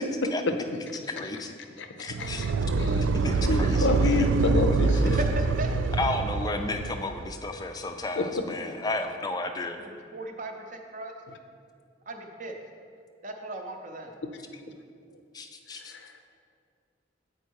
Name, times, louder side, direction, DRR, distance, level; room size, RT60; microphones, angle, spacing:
voice 1, 0.3-0.6 1.2-1.5 2.0-2.5 3.0-4.3 4.9-5.0 6.0-9.8 15.3-15.9, left 2 dB, 20° left, 6 dB, 0.3 m, -33 dB
voice 2, 1.8-2.3 2.8-3.0 3.5-5.2 8.2-8.4 14.2-14.3, left 3 dB, 75° left, 6 dB, 0.5 m, -27 dB
sound 1, 2.1-7.3, right 4 dB, 85° right, 0.3 m, -25 dB
voice 3, 4.9-5.8 9.8-11.1 12.1-12.6 13.2-14.2, right 1 dB, 45° right, 4 dB, 0.6 m, -37 dB
8.2 x 4.4 x 4.6 m, 2.3 s
head